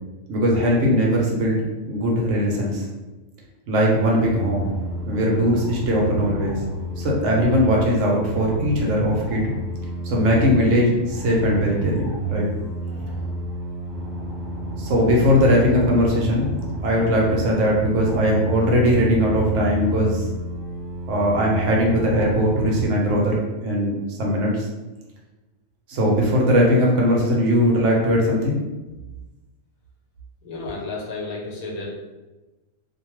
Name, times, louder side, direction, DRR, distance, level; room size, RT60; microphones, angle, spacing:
voice 1, 0.3-2.9 3.7-4.7 5.1-6.6 7.0-9.5 10.0-12.5 14.8-16.5 16.8-20.2 21.1-24.7 25.9-28.6, equal, 70° right, -2 dB, 0.9 m, -20 dB
sound 1, 4.4-22.9, right 1 dB, 45° left, 0.7 m, -30 dB
voice 2, 30.4-32.1, left 3 dB, 85° left, -2 dB, 1.2 m, -32 dB
2.5 x 2.2 x 3.0 m, 1.1 s
omnidirectional pair, 1.5 m